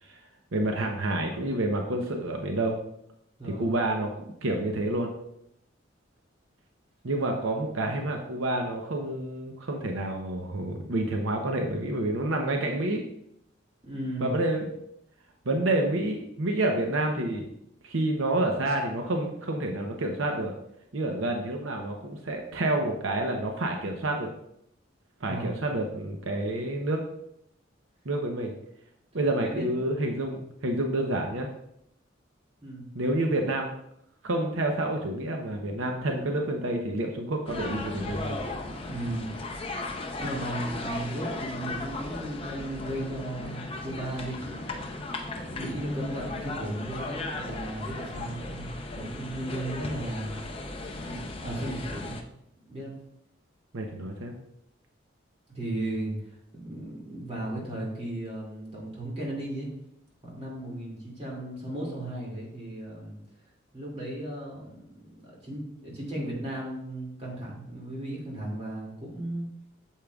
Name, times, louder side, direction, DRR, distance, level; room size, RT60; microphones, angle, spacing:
voice 1, 0.5-2.8 3.4-5.1 7.0-13.0 14.2-14.7 15.5-17.5 17.8-20.5 20.9-24.3 25.2-27.0 28.0-28.5 29.1-31.5 32.9-33.7 34.2-38.4 53.7-54.3, right 1 dB, 85° right, 3 dB, 0.8 m, -28 dB
voice 2, 13.8-14.3 25.3-25.5 29.1-29.7 32.6-32.9 38.8-39.3 40.2-44.7 45.4-48.7 48.9-50.5 50.8-52.2 52.6-52.9 55.5-59.7 60.2-63.2 63.7-69.5, right 1 dB, 30° right, -4 dB, 2.5 m, -35 dB
sound 1, 37.5-52.2, left 2 dB, 30° left, 0.6 m, -36 dB
8.5 x 7.4 x 2.4 m, 0.78 s
head